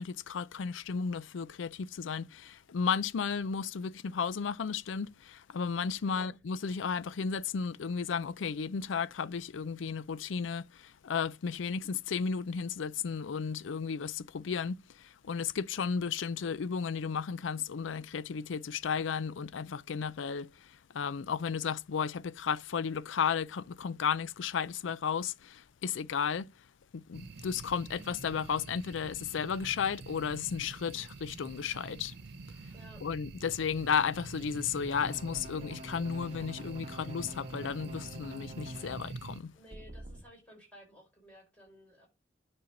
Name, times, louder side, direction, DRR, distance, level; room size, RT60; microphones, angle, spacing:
voice 1, 0.0-26.5 26.9-32.1 33.0-39.5, left 6 dB, 75° left, 0.4 m, -34 dB
sound 1, 27.1-39.4, right 4 dB, 55° right, 0.5 m, -46 dB
sound 2, 34.9-39.0 39.7-40.2, equal, 35° right, 1.2 m, -47 dB
voice 2, 39.5-42.1, equal, 5° left, 5.0 m, -55 dB
10.5 x 4.3 x 5.2 m
head